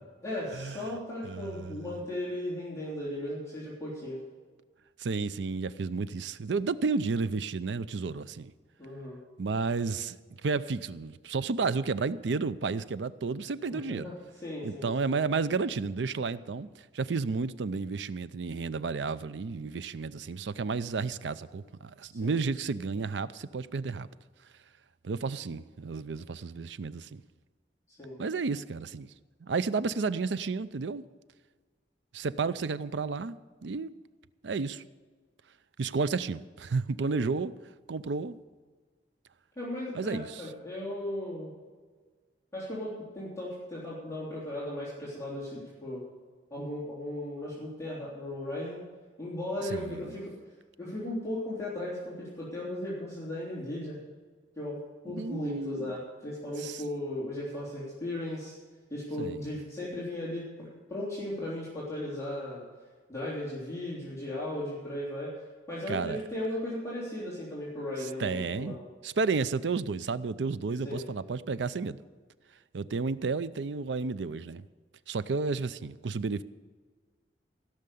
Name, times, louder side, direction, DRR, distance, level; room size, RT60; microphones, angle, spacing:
voice 1, 0.2-4.2 8.8-9.2 13.7-14.1 14.4-15.1 22.1-22.4 28.0-28.2 37.0-37.4 39.6-41.5 42.5-46.0 46.5-48.8 49.2-50.3 50.8-54.0 54.6-54.8 55.0-58.5 58.9-62.6 63.1-65.3 65.7-68.8 70.8-71.0, left 1 dB, 20° left, 3.5 m, -36 dB
voice 2, 1.2-1.8 5.0-8.5 9.4-10.2 10.4-14.1 14.6-24.1 25.0-27.2 28.2-29.1 29.4-31.0 32.1-33.9 34.4-34.8 35.8-37.5 37.9-38.4 39.9-40.5 49.6-50.2 55.1-55.9 56.6-56.8 59.2-59.5 65.9-66.2 68.0-68.8 69.0-72.0 72.7-74.6 75.1-76.4, right 4 dB, 85° right, 0.5 m, -32 dB
16.0 x 6.7 x 8.4 m
head